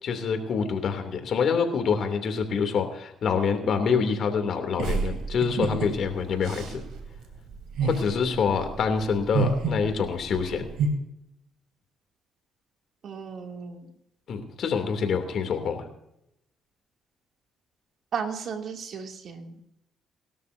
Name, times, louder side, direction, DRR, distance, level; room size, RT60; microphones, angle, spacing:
voice 1, 0.0-6.8 7.8-10.7 14.3-15.8, left 6 dB, 65° left, 6 dB, 2.9 m, -26 dB
sound 1, 4.8-10.9, right 5 dB, 80° right, 2.9 m, -30 dB
voice 2, 13.0-13.9 18.1-19.6, right 6 dB, 65° right, 3 dB, 2.7 m, -34 dB
23.5 x 13.0 x 2.7 m, 0.82 s
cardioid pair, 90°, 0 cm